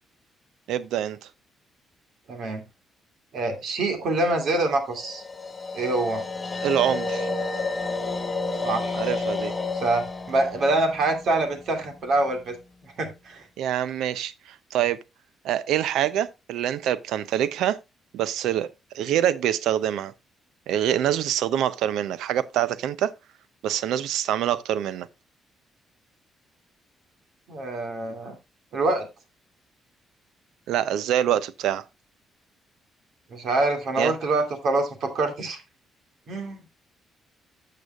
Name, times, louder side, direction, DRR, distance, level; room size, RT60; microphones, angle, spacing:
voice 1, 0.7-1.2 6.6-7.3 8.9-9.5 13.6-15.0 15.4-17.8 18.1-18.7 18.9-20.1 20.7-23.1 23.6-25.1 30.7-31.8 34.0-34.1, right 11 dB, 85° right, 0.5 m, -25 dB
voice 2, 2.3-2.6 3.3-5.2 5.7-6.2 8.6-9.0 9.8-12.6 13.0-13.4 27.5-28.4 28.7-29.1 33.3-35.6 36.3-36.6, right 2 dB, 65° right, 2.4 m, -25 dB
sound 1, 4.9-12.1, left 3 dB, 25° left, 1.7 m, -31 dB
12.5 x 6.7 x 2.3 m
cardioid pair, 90°, 0 cm